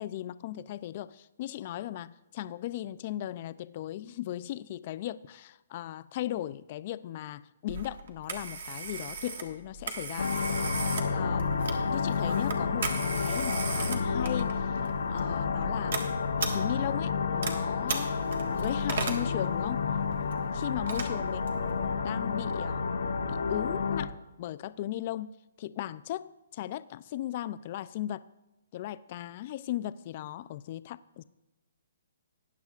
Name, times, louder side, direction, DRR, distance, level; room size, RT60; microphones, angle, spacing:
voice 1, 0.0-10.4 11.1-14.7 15.1-16.0 16.5-18.2 18.5-19.8 20.5-22.9 23.3-25.3 25.6-28.3 28.7-31.2, left 13 dB, 35° left, 0.3 m, -37 dB
Telephone, 7.7-21.9, right 4 dB, 60° right, 1.5 m, -38 dB
sound 1, 10.2-24.1, left 5 dB, 90° left, 1.0 m, -30 dB
19.0 x 9.6 x 2.4 m
hypercardioid pair, 165°, 0 cm